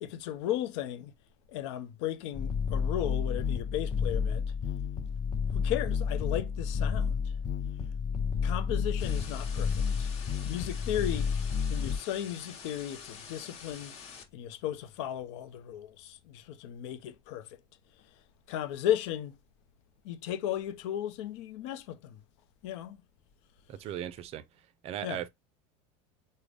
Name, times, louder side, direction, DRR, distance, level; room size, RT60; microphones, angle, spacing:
voice 1, 0.0-1.1 1.5-4.5 5.5-7.3 8.4-10.1 10.4-11.3 11.7-14.0 14.3-17.6 18.5-19.4 20.0-22.2 22.6-23.0 25.0-25.2, left 11 dB, 75° left, 0.6 m, -35 dB
sound 1, 2.3-12.0, left 6 dB, 30° left, 0.7 m, -31 dB
sound 2, 9.0-14.2, left 6 dB, 45° left, 1.2 m, -47 dB
voice 2, 23.7-24.4 24.8-25.3, right 11 dB, 45° right, 0.4 m, -37 dB
3.7 x 2.1 x 3.3 m
supercardioid pair, 120°, 15 cm